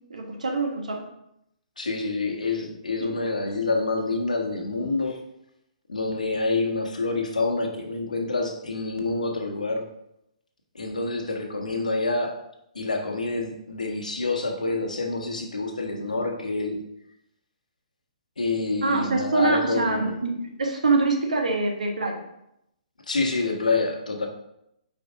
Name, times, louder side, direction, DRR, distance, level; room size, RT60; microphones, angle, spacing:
voice 1, 0.1-1.0 3.0-3.1 3.5-3.6 18.8-22.2, right 3 dB, 70° right, 4 dB, 1.4 m, -25 dB
voice 2, 1.8-5.2 5.9-9.8 10.7-12.3 12.7-16.8 18.4-20.2 23.1-24.3, left 3 dB, 75° left, 3 dB, 1.3 m, -27 dB
6.4 x 5.0 x 3.7 m, 0.80 s
figure-of-eight pair, 125°, 4 cm